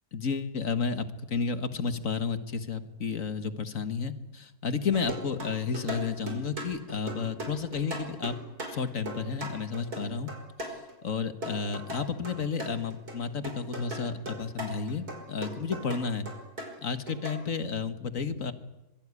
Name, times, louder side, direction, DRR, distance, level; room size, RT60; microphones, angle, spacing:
voice 1, 0.1-8.3 8.7-10.3 10.6-16.3 16.8-18.5, left 5 dB, 60° left, 11 dB, 2.0 m, -32 dB
sound 1, 4.9-11.1 11.4-13.2 13.4-17.4, right 1 dB, 75° right, 5.7 m, -38 dB
25.5 x 23.5 x 9.8 m, 0.96 s
omnidirectional pair, 1.6 m